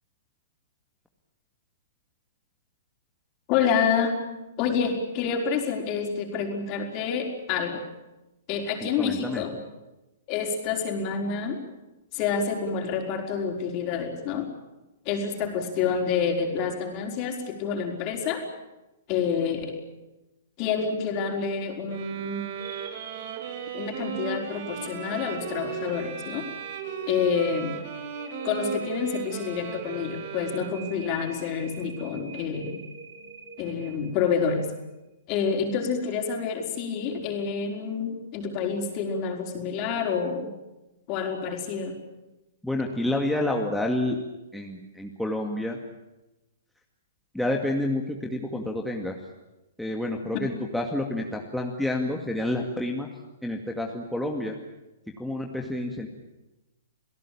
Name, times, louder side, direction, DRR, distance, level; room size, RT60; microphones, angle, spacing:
voice 1, 3.5-4.2 4.6-7.8 8.5-9.6 10.3-11.6 12.1-14.5 15.1-18.4 19.1-19.7 20.6-22.5 23.7-26.5 27.1-27.8 28.4-32.8 33.6-34.7 35.3-40.5 41.1-42.0, left 6 dB, 40° left, 3 dB, 5.2 m, -28 dB
voice 2, 8.8-9.4 42.6-44.2 44.5-45.8 47.3-49.2 49.8-53.1 53.4-54.6 55.2-56.1, left 1 dB, ahead, 0 dB, 2.3 m, -29 dB
sound 1, 21.9-31.1, right 8 dB, 50° right, 3.1 m, -36 dB
sound 2, 22.5-34.7, right 4 dB, 80° right, 6.5 m, -45 dB
29.0 x 17.5 x 8.8 m, 1.0 s
hypercardioid pair, 125°, 0 cm